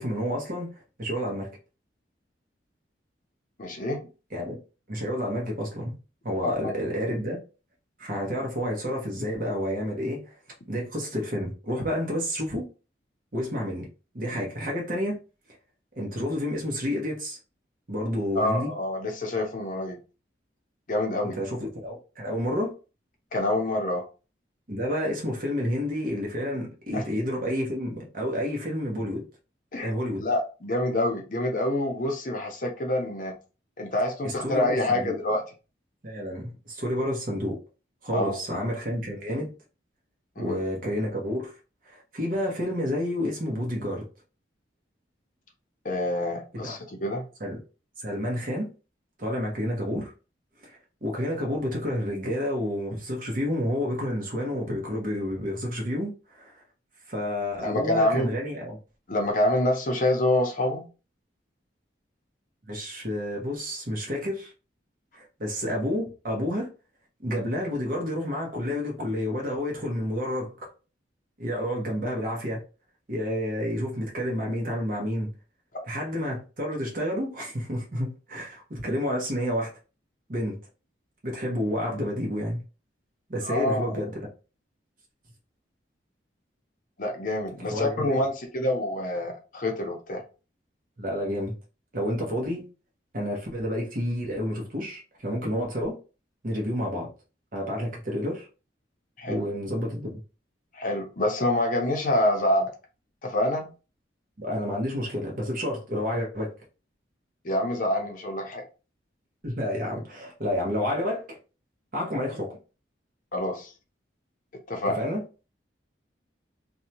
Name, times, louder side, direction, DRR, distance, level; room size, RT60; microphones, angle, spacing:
voice 1, 0.0-1.5 4.3-4.6 4.9-6.0 6.2-7.4 8.0-10.3 10.7-12.7 13.3-13.9 14.1-15.2 16.0-17.4 17.9-18.7 21.2-22.7 24.7-29.2 29.8-30.2 34.2-35.2 36.0-37.6 38.0-39.5 40.4-41.5 41.9-44.1 46.6-46.8 47.4-47.6 48.0-48.7 49.2-50.1 50.6-56.6 57.1-58.8 62.7-64.5 65.1-66.7 67.2-70.7 71.4-72.6 73.1-75.3 75.9-79.7 80.3-80.6 81.2-82.6 83.3-84.3 87.6-88.2 91.0-91.5 91.9-92.7 93.1-96.0 96.4-97.1 97.5-98.5 99.3-100.2 104.4-106.5 109.4-111.4 111.9-112.6 114.9-115.2, equal, 50° right, 0.9 m, -30 dB
voice 2, 3.6-4.1 6.4-6.7 18.3-20.0 20.9-21.4 23.3-24.0 26.9-27.0 29.7-29.9 30.2-33.3 33.8-35.4 38.1-38.4 40.4-40.6 45.8-47.3 57.6-58.3 59.1-60.9 75.7-75.9 83.4-84.0 87.0-90.2 99.2-99.5 100.7-102.7 103.2-103.7 107.4-108.6 113.3-113.7 114.7-115.0, left 1 dB, 45° left, 0.6 m, -26 dB
2.6 x 2.2 x 2.8 m
head